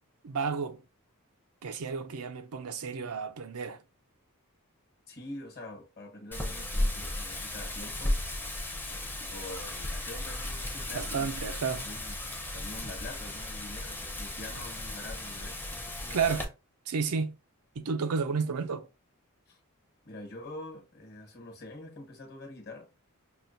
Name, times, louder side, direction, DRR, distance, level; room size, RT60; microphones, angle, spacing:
voice 1, 0.2-0.8 1.6-3.8 10.9-11.9 16.1-16.5 16.9-17.4 17.8-18.9, right 5 dB, 75° right, 0.5 m, -31 dB
voice 2, 5.1-8.2 8.9-11.4 11.8-16.5 19.5-19.6 20.0-22.9, left 2 dB, 45° left, 1.2 m, -45 dB
Wind, 6.3-16.4, left 1 dB, 10° left, 0.6 m, -35 dB
5.9 x 2.2 x 2.6 m
head